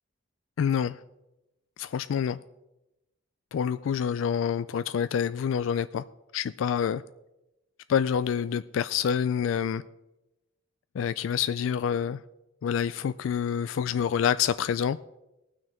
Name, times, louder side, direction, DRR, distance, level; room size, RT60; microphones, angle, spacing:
voice 1, 0.6-1.0 1.8-2.4 3.5-6.0 6.3-7.0 7.9-9.8 10.9-12.2 12.6-15.0, left 8 dB, 75° left, 14 dB, 0.3 m, -27 dB
18.5 x 6.3 x 4.4 m, 0.96 s
head